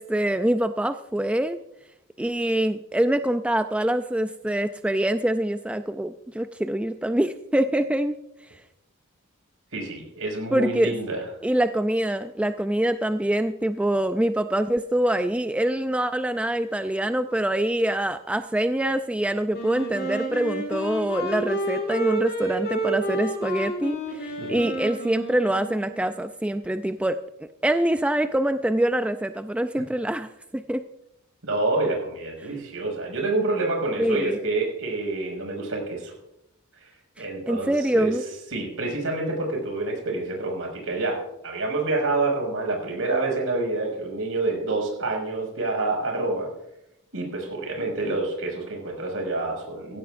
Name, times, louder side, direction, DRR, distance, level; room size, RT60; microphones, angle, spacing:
voice 1, 0.0-1.6 2.2-8.2 10.5-11.0 11.4-27.2 27.6-30.8 34.0-34.4 37.2-38.2, right 1 dB, 5° right, 9 dB, 0.4 m, -25 dB
voice 2, 9.7-11.2 24.4-24.7 31.4-36.1 36.8-36.9 37.2-38.1 38.5-46.5 47.1-50.0, right 2 dB, 70° right, 1 dB, 5.9 m, -27 dB
Wind instrument woodwind instrument, 19.5-26.2, right 1 dB, 50° left, 5.0 m, -30 dB
16.5 x 16.5 x 2.6 m, 0.84 s
head